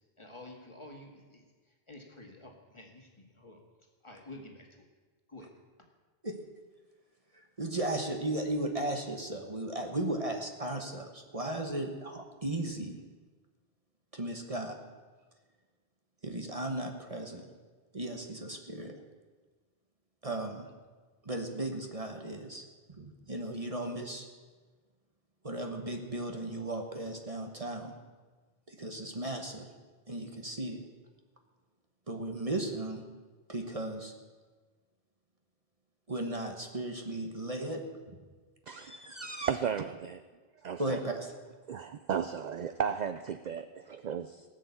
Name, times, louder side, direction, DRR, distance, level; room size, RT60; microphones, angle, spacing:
voice 1, 0.2-3.6 4.0-4.9 5.3-5.5, left 1 dB, 25° left, 1 dB, 2.0 m, -50 dB
voice 2, 7.3-13.0 14.1-14.8 16.2-17.4 17.9-19.0 20.2-20.6 21.2-22.6 22.9-24.3 25.4-27.9 28.7-29.7 30.1-30.8 32.1-33.0 33.5-34.1 36.1-37.8 40.8-41.3, right 1 dB, 35° right, 3 dB, 1.3 m, -36 dB
voice 3, 38.7-40.2 40.6-41.0 41.7-44.4, right 7 dB, 50° right, 10 dB, 0.6 m, -35 dB
18.0 x 6.6 x 8.4 m, 1.4 s
omnidirectional pair, 1.1 m